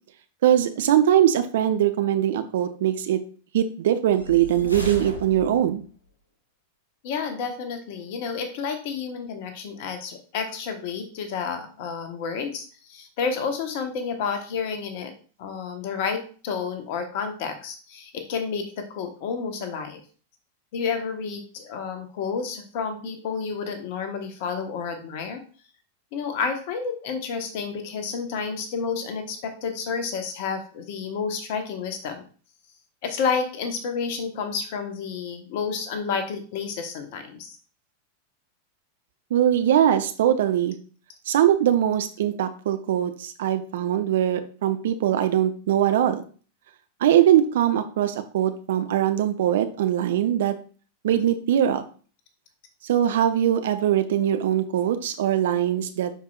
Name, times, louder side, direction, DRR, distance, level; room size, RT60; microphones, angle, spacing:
voice 1, 0.4-3.2 3.5-5.8 39.3-40.8 41.3-46.2 47.0-50.5 51.0-51.8 52.8-56.1, right 11 dB, 60° right, 8 dB, 0.7 m, -21 dB
sound 1, 4.1-5.9, left 1 dB, 80° left, 1.5 m, -35 dB
voice 2, 7.0-15.1 15.4-20.0 20.7-25.4 26.1-32.2 33.0-37.6, left 5 dB, 50° left, 7 dB, 1.2 m, -30 dB
9.9 x 4.5 x 2.4 m, 0.40 s
figure-of-eight pair, 90°, 0 cm